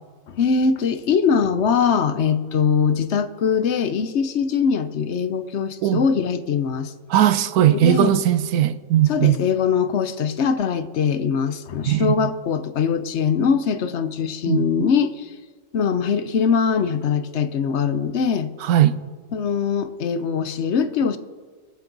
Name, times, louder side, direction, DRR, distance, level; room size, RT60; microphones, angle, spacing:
voice 1, 0.3-6.9 7.7-8.1 9.1-15.3 15.7-18.5 19.3-21.2, left 6 dB, 55° left, 0.9 m, -22 dB
voice 2, 7.1-9.4 11.9-12.3 14.5-14.7 18.7-19.0, right 11 dB, 75° right, 1.1 m, -18 dB
24.5 x 8.4 x 4.0 m
omnidirectional pair, 1.7 m